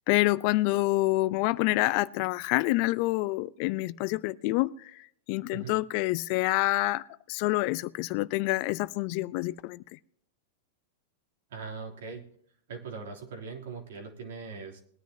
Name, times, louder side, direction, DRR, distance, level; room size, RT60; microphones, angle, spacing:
voice 1, 0.1-4.9 5.3-9.8, left 20 dB, 50° left, 0.6 m, -27 dB
voice 2, 11.5-12.2 12.7-14.8, right 5 dB, 70° right, 3.2 m, -40 dB
21.0 x 10.5 x 2.8 m
hypercardioid pair, 105°, 0 cm